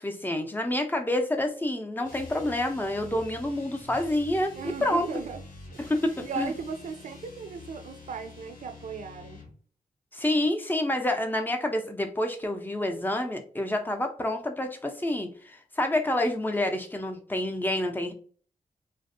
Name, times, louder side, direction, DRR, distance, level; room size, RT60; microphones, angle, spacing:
voice 1, 0.0-4.5 4.8-5.1 5.8-6.5 10.1-18.1, left 1 dB, 15° left, 0.5 m, -28 dB
sound 1, 2.0-9.6, left 2 dB, 80° left, 0.9 m, -47 dB
voice 2, 4.6-5.4 6.2-9.4, right 5 dB, 65° right, 0.4 m, -37 dB
2.5 x 2.1 x 2.5 m
cardioid pair, 60°, 14 cm